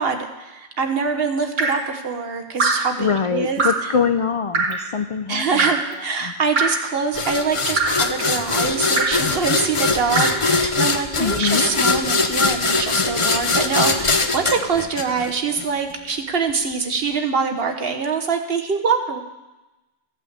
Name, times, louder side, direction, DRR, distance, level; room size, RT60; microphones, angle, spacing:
voice 1, 0.0-3.9 5.3-19.2, right 5 dB, 65° right, 6 dB, 1.3 m, -24 dB
Drip, 1.6-1.9 2.6-2.9 3.6-3.9 4.5-4.9 5.6-5.9 6.5-6.9 7.8-8.1 9.0-9.3 10.1-10.5 11.4-11.7 12.6-12.8, right 3 dB, 50° right, 1.4 m, -23 dB
voice 2, 3.0-5.7 6.1-6.3 11.2-11.7, left 6 dB, 55° left, 9 dB, 0.3 m, -23 dB
sound 1, 7.1-15.6, left 3 dB, 35° left, 0.7 m, -21 dB
14.0 x 5.9 x 8.0 m, 1.0 s
omnidirectional pair, 1.1 m